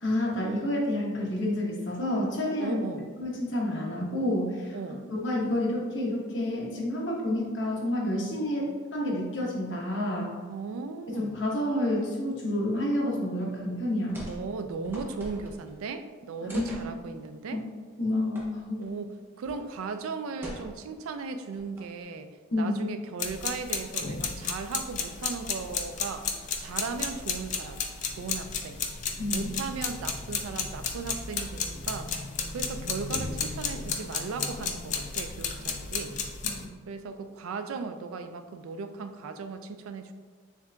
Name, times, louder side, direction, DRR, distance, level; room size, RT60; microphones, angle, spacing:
voice 1, 0.0-2.8 3.2-4.8 5.1-10.4 11.2-14.2 16.4-16.7 17.5-17.6 18.0-18.9 22.5-22.8 29.2-29.5, left 1 dB, 60° left, -3 dB, 0.9 m, -29 dB
voice 2, 2.6-3.1 4.7-5.1 10.5-11.4 14.3-17.6 18.8-19.1 19.4-22.3 22.5-26.3 26.6-27.8 28.2-28.8 29.3-32.1 32.5-36.2 36.9-40.1, right 4 dB, 90° right, 9 dB, 0.3 m, -37 dB
sound 1, 14.1-14.4 14.7-15.8 16.5-16.9 18.3-18.5 18.8-18.9 19.4-19.7 20.4-21.0 21.5-22.0, equal, 10° right, 0.7 m, -42 dB
sound 2, 23.2-36.6, left 5 dB, 35° left, 0.3 m, -33 dB
7.1 x 2.5 x 2.2 m, 1.5 s
head